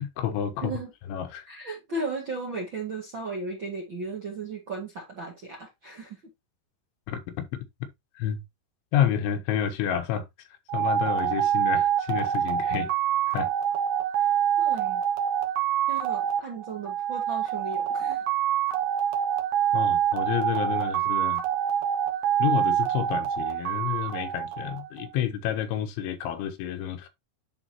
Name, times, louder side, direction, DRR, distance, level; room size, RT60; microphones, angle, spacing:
voice 1, 0.0-0.7 1.1-1.4 7.1-7.5 8.2-8.4 8.9-10.3 10.7-12.9 13.3-13.5 19.7-21.4 22.4-27.1, left 9 dB, 80° left, 3.4 m, -29 dB
voice 2, 1.5-6.2 14.6-15.0 15.9-18.2, right 3 dB, 50° right, 1.4 m, -35 dB
sound 1, 10.7-25.1, right 10 dB, 80° right, 1.7 m, -26 dB
10.5 x 4.2 x 2.9 m
omnidirectional pair, 5.2 m